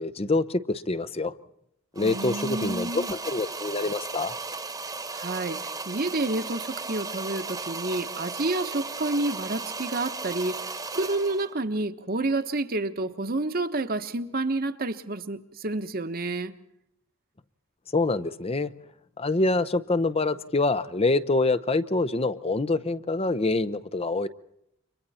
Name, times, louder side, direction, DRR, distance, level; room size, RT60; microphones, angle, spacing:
voice 1, 0.0-1.3 2.0-4.3 17.9-18.7 19.2-24.3, left 2 dB, 30° left, 0.7 m, -26 dB
sound 1, 2.0-11.5, right 3 dB, 20° right, 1.3 m, -36 dB
voice 2, 2.0-3.1 5.1-10.6 10.9-16.5, right 2 dB, 45° right, 1.2 m, -29 dB
30.0 x 24.5 x 4.3 m
head